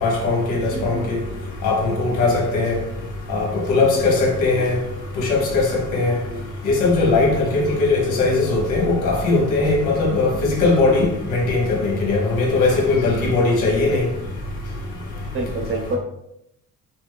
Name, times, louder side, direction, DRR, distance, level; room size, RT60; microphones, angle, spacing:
voice 1, 0.0-1.2 1.6-2.8 3.3-4.8 5.2-6.2 6.6-14.0, left 3 dB, 90° left, 1.2 m, -19 dB
voice 2, 0.7-1.1 15.3-16.0, right 2 dB, 40° right, 0.9 m, -27 dB
5.7 x 2.1 x 2.3 m
cardioid pair, 90°, 30 cm